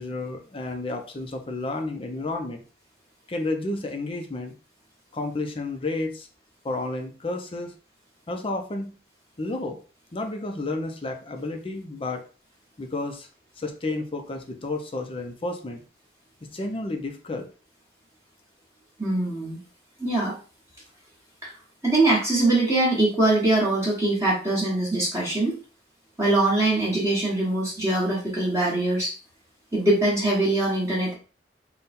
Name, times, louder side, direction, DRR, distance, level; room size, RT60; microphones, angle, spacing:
voice 1, 0.0-2.6 3.3-4.5 5.1-6.3 6.6-7.7 8.3-8.9 9.4-9.8 10.1-12.2 12.8-13.3 13.6-15.8 16.5-17.5, left 2 dB, 30° left, 4 dB, 0.6 m, -31 dB
voice 2, 19.0-19.6 20.0-20.4 21.4-21.5 21.8-25.5 26.2-29.1 29.7-31.1, right 2 dB, 15° right, -6 dB, 1.3 m, -22 dB
3.7 x 2.3 x 4.2 m, 0.36 s
head